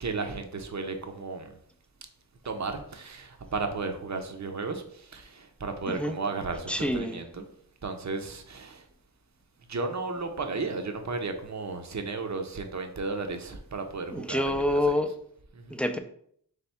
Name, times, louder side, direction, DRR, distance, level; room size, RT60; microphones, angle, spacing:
voice 1, 0.0-1.6 2.4-7.5 7.8-8.8 9.7-14.8 15.5-15.7, right 3 dB, 40° right, 0.7 m, -34 dB
voice 2, 6.7-7.2 14.1-15.1 15.7-16.0, left 1 dB, 5° left, 0.5 m, -27 dB
3.5 x 3.4 x 4.2 m
cardioid pair, 40°, 42 cm